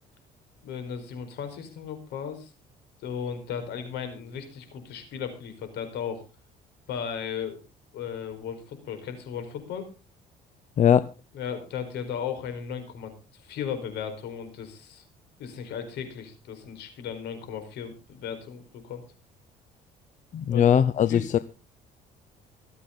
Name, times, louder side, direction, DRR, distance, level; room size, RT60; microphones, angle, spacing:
voice 1, 0.6-2.5 3.0-6.2 6.9-7.6 7.9-9.9 11.3-15.0 15.4-19.0 20.5-20.7 21.1-21.3, left 7 dB, 80° left, 8 dB, 4.7 m, -36 dB
voice 2, 10.8-11.1 20.3-21.4, left 9 dB, 45° left, 15 dB, 0.8 m, -20 dB
24.5 x 8.4 x 3.9 m, 0.32 s
cardioid pair, 110°, 17 cm